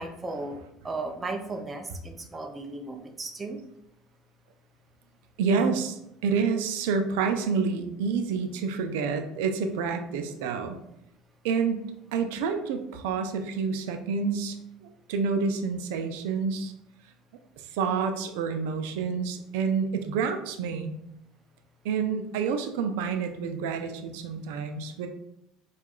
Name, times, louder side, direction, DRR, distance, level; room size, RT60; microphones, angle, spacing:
voice 1, 0.0-3.6, right 2 dB, 20° right, 4 dB, 0.5 m, -36 dB
voice 2, 5.4-10.8 11.4-16.7 17.7-21.0 21.8-25.1, right 5 dB, 80° right, 7 dB, 0.4 m, -28 dB
4.6 x 2.3 x 2.3 m, 0.81 s
supercardioid pair, 95°, 0 cm